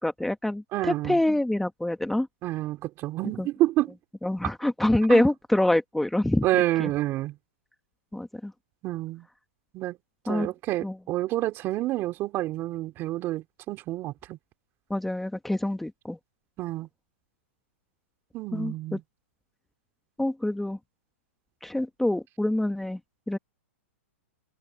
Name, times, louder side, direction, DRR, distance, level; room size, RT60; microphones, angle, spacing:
voice 1, 0.0-2.3 3.4-3.5 4.2-6.4 6.8-6.9 8.1-8.5 10.3-10.5 10.8-10.9 14.9-16.2 18.5-19.0 20.2-20.8 21.6-23.0 23.3-23.4, left 1 dB, 5° left, 1.3 m, -26 dB
voice 2, 0.7-1.2 2.4-3.9 5.1-5.3 6.4-7.4 8.8-9.3 9.7-10.0 10.2-14.4 16.6-16.9 18.3-19.0, right 16 dB, 30° right, 2.7 m, -28 dB
hypercardioid pair, 135°, 7 cm